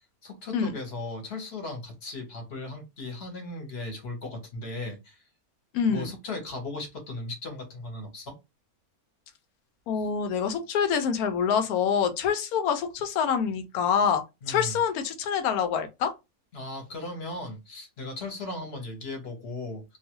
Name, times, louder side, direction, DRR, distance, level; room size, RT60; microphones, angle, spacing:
voice 1, 0.2-5.2 5.8-8.3 10.0-10.1 14.4-14.8 16.5-19.8, left 2 dB, 45° left, 1.1 m, -37 dB
voice 2, 5.7-6.1 9.9-16.1, left 7 dB, 80° left, 1.1 m, -26 dB
2.6 x 2.3 x 2.9 m
omnidirectional pair, 1.6 m